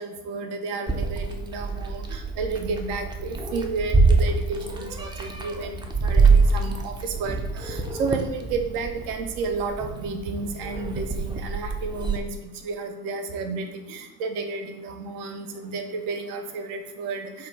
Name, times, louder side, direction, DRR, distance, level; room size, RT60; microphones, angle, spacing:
voice 1, 0.0-17.5, right 4 dB, 60° right, 6 dB, 0.8 m, -32 dB
Meow, 0.9-12.2, right 4 dB, 10° right, 0.4 m, -25 dB
5.2 x 2.2 x 4.0 m, 1.1 s
hypercardioid pair, 70°, 48 cm